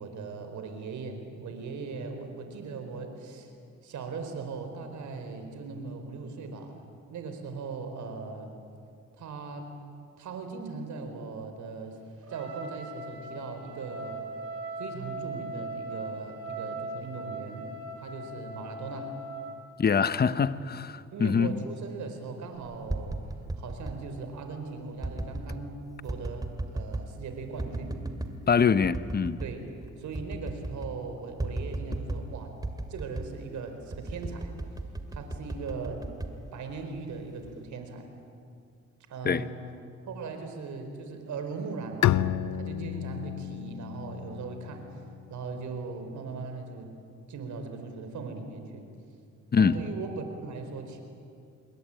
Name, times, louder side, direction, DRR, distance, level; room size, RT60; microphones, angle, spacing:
voice 1, 0.0-3.5 3.8-8.5 9.2-9.7 10.2-12.0 12.3-14.2 14.8-17.7 18.0-19.1 21.1-23.2 23.6-25.8 26.0-28.0 29.4-29.7 30.0-32.5 32.9-34.5 35.1-36.1 36.5-38.1 39.1-39.6 40.1-42.2 42.5-44.8 45.3-47.0 47.3-48.9 49.6-51.0, right 4 dB, 70° right, 6 dB, 4.5 m, -39 dB
Trumpet, 12.2-19.6, right 2 dB, 50° right, 5.3 m, -39 dB
voice 2, 19.8-21.6 28.5-29.4 39.2-39.5 49.5-49.8, left 6 dB, 35° left, 14 dB, 0.9 m, -24 dB
sound 1, 22.7-24.0 25.0-25.6 26.1-27.1 27.6-28.4 28.8-29.6 29.8-29.9 30.2-31.0 31.4-32.3 32.6-33.4 33.9-37.0 37.4-37.8, right 2 dB, 15° right, 2.4 m, -35 dB
Bowed string instrument, 42.0-45.5, left 12 dB, 65° left, 0.8 m, -30 dB
27.5 x 22.0 x 9.0 m, 2.4 s
cardioid pair, 90°, 30 cm